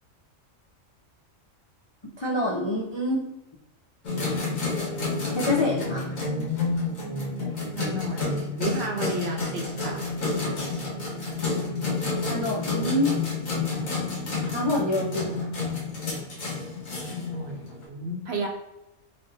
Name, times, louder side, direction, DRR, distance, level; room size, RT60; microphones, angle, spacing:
voice 1, 2.2-3.3 5.3-6.1 12.3-13.2 14.5-15.5, left 1 dB, 40° left, -4 dB, 0.4 m, -26 dB
sound 1, 4.0-17.8, left 3 dB, 85° left, 1.7 m, -30 dB
voice 2, 7.7-10.0 17.1-18.5, right 1 dB, 60° right, 1 dB, 0.9 m, -32 dB
4.0 x 3.3 x 2.6 m, 0.96 s
omnidirectional pair, 1.4 m